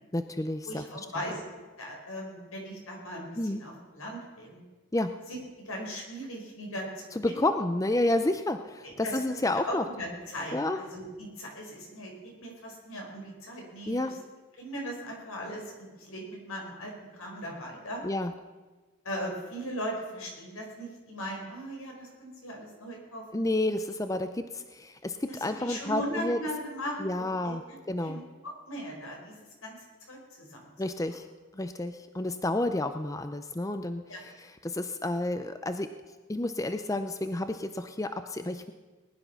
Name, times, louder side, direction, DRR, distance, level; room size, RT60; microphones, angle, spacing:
voice 1, 0.1-1.1 3.4-3.6 4.9-5.1 7.2-9.8 10.5-10.8 13.9-14.1 18.0-18.3 23.3-26.4 27.0-27.6 27.9-28.2 30.8-31.3 31.5-35.9 36.3-38.7, left 1 dB, 15° left, 9 dB, 0.5 m, -30 dB
voice 2, 0.6-1.5 1.8-4.6 5.3-5.4 5.6-7.4 8.8-12.1 12.4-14.1 14.6-18.0 19.0-23.4 25.3-27.8 28.0-30.7 34.1-34.2, equal, 80° left, 0 dB, 4.8 m, -39 dB
19.5 x 10.5 x 5.8 m, 1.3 s
head